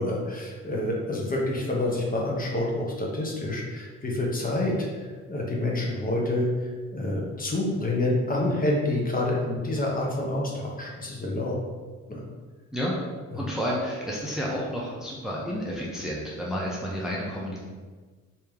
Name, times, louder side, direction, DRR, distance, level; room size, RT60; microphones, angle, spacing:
voice 1, 0.0-4.7 5.3-11.6 12.1-12.3 13.3-13.4, left 1 dB, 30° left, -2 dB, 0.8 m, -28 dB
voice 2, 13.3-17.6, equal, ahead, -5 dB, 0.6 m, -30 dB
3.3 x 2.8 x 3.5 m, 1.4 s
cardioid pair, 90°, 30 cm